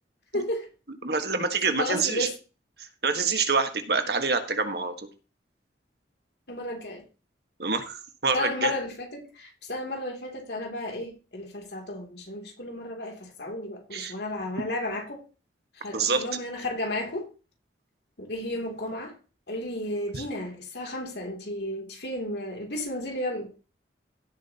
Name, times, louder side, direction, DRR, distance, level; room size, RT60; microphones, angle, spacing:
voice 1, 0.3-0.7 1.8-2.3 6.5-7.0 8.3-15.2 15.7-17.3 18.2-19.2 19.5-23.5, left 1 dB, 65° left, 2.9 m, -33 dB
voice 2, 1.0-2.3 3.0-4.9 7.6-8.7 13.9-14.1 15.9-16.2 20.1-20.2, right 4 dB, 60° right, 1.5 m, -26 dB
16.0 x 7.5 x 2.9 m
head